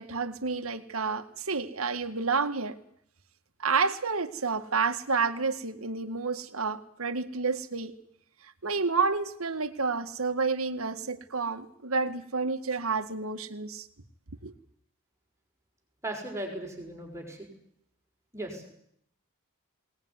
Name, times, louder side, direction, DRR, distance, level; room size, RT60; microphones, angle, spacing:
voice 1, 0.0-2.8 3.6-8.0 8.4-13.9 14.4-14.5, right 4 dB, 75° right, 8 dB, 1.9 m, -30 dB
voice 2, 16.0-17.5 18.3-18.7, right 1 dB, 15° right, 1 dB, 5.9 m, -37 dB
22.0 x 19.5 x 9.7 m, 0.69 s
head